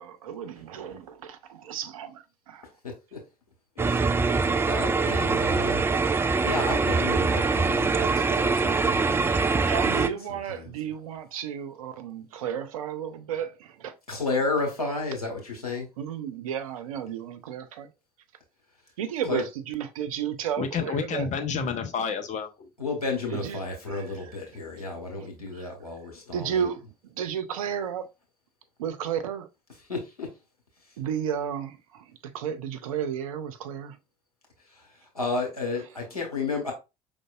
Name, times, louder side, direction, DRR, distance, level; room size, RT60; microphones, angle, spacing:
voice 1, 0.0-2.7 9.7-13.9 16.0-17.9 19.0-21.3 23.3-23.6 23.9-24.1 25.2-25.3 25.5-25.7 26.3-28.1 28.8-29.5 31.0-32.1 32.3-34.0, right 8 dB, 70° right, 0.6 m, -33 dB
voice 2, 3.7-5.8 6.4-10.7 14.1-15.9 19.3-19.4 22.8-26.6 29.9-30.3 35.1-36.7, left 3 dB, 85° left, 1.4 m, -32 dB
sound 1, 3.8-10.1, right 4 dB, 15° right, 0.3 m, -24 dB
voice 3, 20.6-22.7, left 6 dB, 40° left, 0.9 m, -30 dB
5.2 x 3.5 x 2.5 m
figure-of-eight pair, 60°, 19 cm